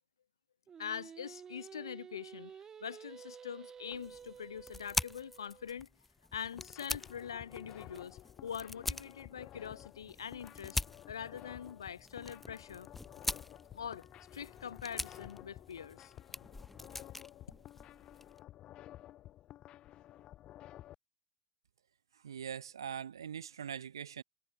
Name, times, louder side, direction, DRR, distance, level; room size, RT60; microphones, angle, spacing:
Singing, 0.7-5.8, right 7 dB, 25° right, 0.9 m, -52 dB
voice 1, 0.8-2.5 2.8-5.9 6.3-10.8 11.1-12.9 13.7-14.1 14.3-16.1, left 8 dB, 70° left, 0.9 m, -44 dB
sound 1, 3.9-18.4, left 2 dB, 5° left, 0.3 m, -44 dB
sound 2, 6.2-20.9, left 13 dB, 35° left, 5.0 m, -53 dB
voice 2, 22.1-24.2, right 8 dB, 70° right, 3.1 m, -42 dB
figure-of-eight pair, 85°, 2 cm